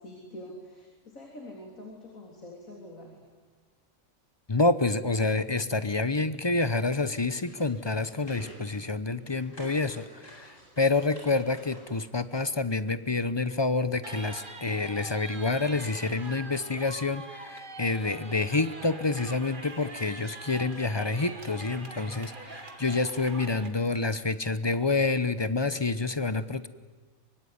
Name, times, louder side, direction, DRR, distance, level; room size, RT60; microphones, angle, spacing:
voice 1, 0.0-3.2, left 1 dB, 85° left, 0 dB, 3.9 m, -45 dB
voice 2, 4.5-26.7, left 3 dB, 25° left, 13 dB, 0.8 m, -28 dB
sound 1, 7.3-8.6 9.0-12.4, equal, 70° left, 8.2 m, -50 dB
sound 2, 14.0-23.7, right 2 dB, 40° right, 2.2 m, -43 dB
24.5 x 23.5 x 9.6 m, 1.4 s
omnidirectional pair, 1.4 m